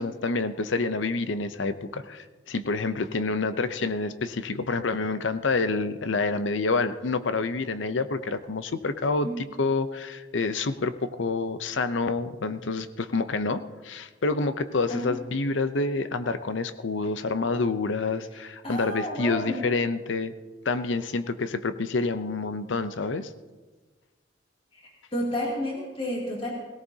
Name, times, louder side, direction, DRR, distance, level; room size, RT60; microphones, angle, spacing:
voice 1, 0.0-20.3 20.7-23.3, left 3 dB, 80° left, 12 dB, 0.7 m, -28 dB
voice 2, 18.6-19.7 24.7-26.5, equal, 30° left, -3 dB, 2.7 m, -31 dB
17.5 x 17.5 x 2.8 m, 1.3 s
head